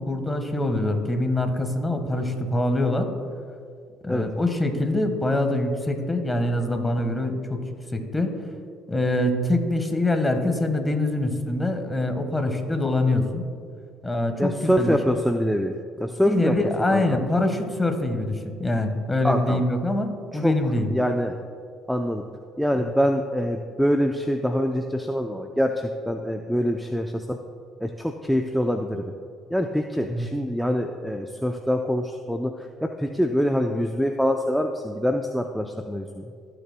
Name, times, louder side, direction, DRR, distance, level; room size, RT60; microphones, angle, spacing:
voice 1, 0.0-3.1 4.0-7.6 7.9-8.3 8.9-13.4 14.0-15.0 16.2-20.9 22.8-22.9 30.1-30.3, left 1 dB, 15° left, 6 dB, 1.4 m, -24 dB
voice 2, 14.4-16.6 16.9-17.2 19.2-19.6 20.3-20.5 20.9-21.4 21.9-22.2 22.6-27.4 27.8-29.1 29.5-36.3, equal, ahead, 3 dB, 0.5 m, -25 dB
16.0 x 6.8 x 2.2 m, 2.2 s
supercardioid pair, 65°, 0 cm